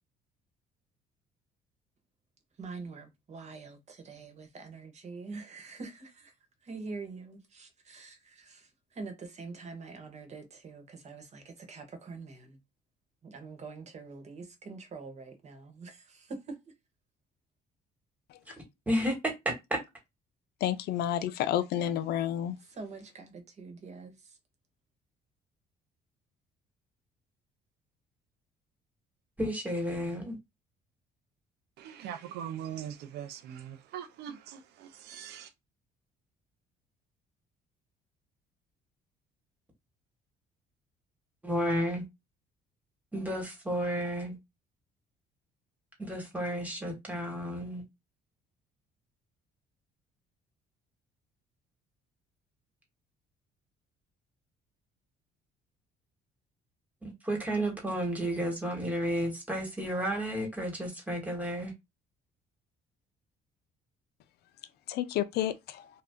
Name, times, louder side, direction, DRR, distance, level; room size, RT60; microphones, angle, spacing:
voice 1, 2.6-6.3 6.6-12.6 13.2-16.6 22.8-24.4, right 4 dB, 40° right, 1.1 m, -45 dB
voice 2, 18.9-19.8 29.4-30.4 41.4-42.0 43.1-44.4 46.0-47.8 57.0-61.7, equal, 10° right, 1.4 m, -32 dB
voice 3, 20.6-22.6 64.9-65.9, left 11 dB, 70° left, 0.5 m, -30 dB
voice 4, 31.8-35.5, right 9 dB, 75° right, 0.6 m, -41 dB
2.7 x 2.3 x 3.5 m
cardioid pair, 110°, 17 cm